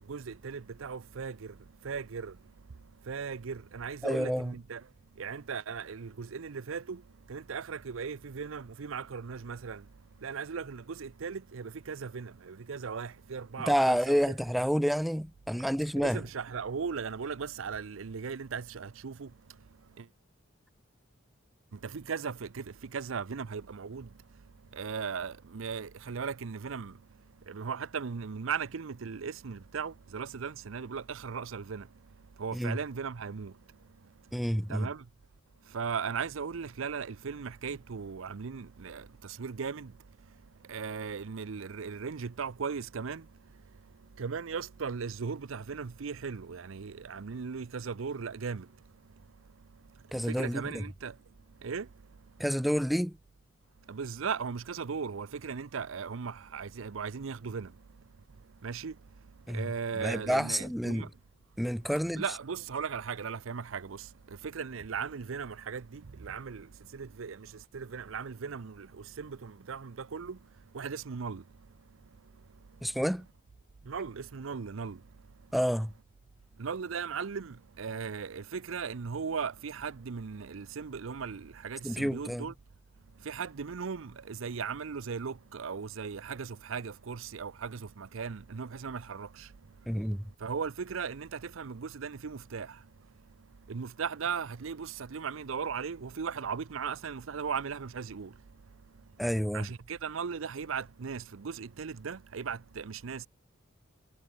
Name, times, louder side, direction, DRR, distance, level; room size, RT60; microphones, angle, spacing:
voice 1, 0.1-1.5 1.8-2.4 3.1-4.8 5.2-7.0 7.3-9.8 10.2-14.2 16.0-19.3 20.0-20.1 21.8-22.6 22.9-24.1 24.7-26.9 27.5-31.9 32.4-33.5 34.7-35.0 35.7-39.9 40.7-43.2 44.2-48.7 50.3-51.1 51.6-51.9 53.9-57.7 58.6-58.9 59.5-61.1 62.2-64.1 64.4-66.7 66.9-67.5 67.7-70.4 70.7-71.4 73.9-75.0 76.6-82.5 83.2-89.5 90.4-92.8 93.7-98.3 99.5-103.3, right 6 dB, 80° right, 0.6 m, -37 dB
voice 2, 4.0-4.5 13.7-16.2 32.5-32.8 34.3-34.9 50.1-50.8 52.4-53.2 59.5-59.7 59.9-61.1 61.6-62.2 72.8-73.3 75.5-75.9 81.8-82.5 89.9-90.3 99.2-99.7, equal, ahead, 0.6 m, -29 dB
head